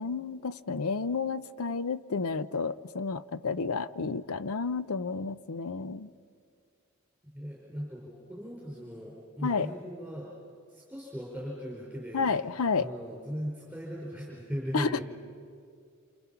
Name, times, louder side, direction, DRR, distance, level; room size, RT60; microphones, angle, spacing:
voice 1, 0.0-6.1 9.4-9.7 12.1-12.9 14.7-15.0, left 4 dB, 80° left, 14 dB, 0.6 m, -31 dB
voice 2, 7.3-10.3 10.7-15.0, equal, ahead, -5 dB, 4.8 m, -38 dB
28.0 x 27.5 x 5.8 m, 2.3 s
head